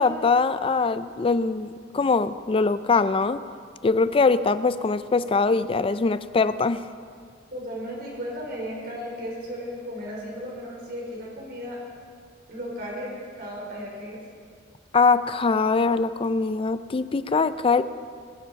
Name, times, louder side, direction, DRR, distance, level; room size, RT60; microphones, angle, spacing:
voice 1, 0.0-3.4 3.8-6.8 14.9-17.8, left 4 dB, 30° left, 14 dB, 0.4 m, -22 dB
voice 2, 7.5-11.8 12.5-14.2, equal, 55° right, -3 dB, 4.5 m, -35 dB
21.0 x 7.6 x 5.9 m, 2.1 s
head